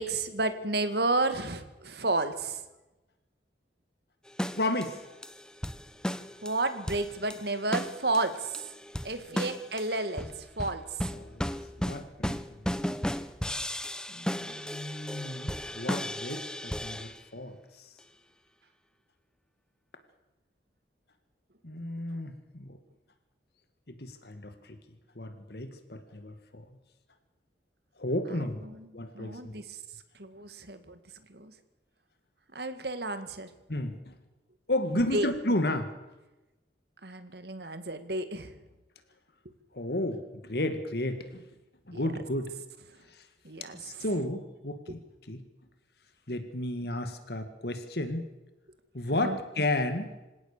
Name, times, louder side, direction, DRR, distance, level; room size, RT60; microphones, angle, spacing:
voice 1, 0.0-2.6 6.4-8.6 9.0-11.0 28.6-29.8 30.1-31.0 31.3-31.5 32.5-33.5 34.9-35.3 37.0-38.6 41.9-42.1 43.4-44.0 49.1-49.6, right 2 dB, 60° right, 10 dB, 2.1 m, -32 dB
sound 1, 4.3-17.2 18.0-18.1, equal, 5° left, 0.8 m, -35 dB
voice 2, 4.6-5.0 9.3-9.4 11.1-11.5 11.8-12.4 14.1-17.9 21.6-22.8 23.9-24.8 25.2-26.7 28.0-28.6 28.9-29.6 33.7-34.2 34.7-35.9 39.7-41.4 41.9-42.5 43.1-43.2 43.7-45.0 45.3-45.4 46.3-48.3 48.9-50.1, left 1 dB, 60° left, 8 dB, 2.0 m, -33 dB
27.0 x 17.0 x 6.8 m, 1.0 s
head